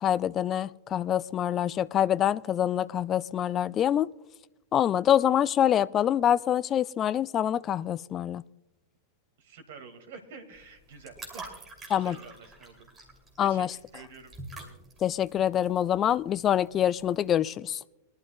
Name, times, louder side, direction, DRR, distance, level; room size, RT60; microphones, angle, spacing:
voice 1, 0.0-4.1 4.7-8.4 11.9-12.1 13.4-13.7 15.0-17.8, left 10 dB, 30° left, 0.3 m, -25 dB
voice 2, 9.4-11.5 11.9-12.9 13.4-14.3, right 5 dB, 55° right, 1.9 m, -48 dB
sound 1, 10.5-17.3, right 2 dB, 15° right, 2.7 m, -47 dB
22.5 x 12.0 x 2.2 m
figure-of-eight pair, 90°, 0 cm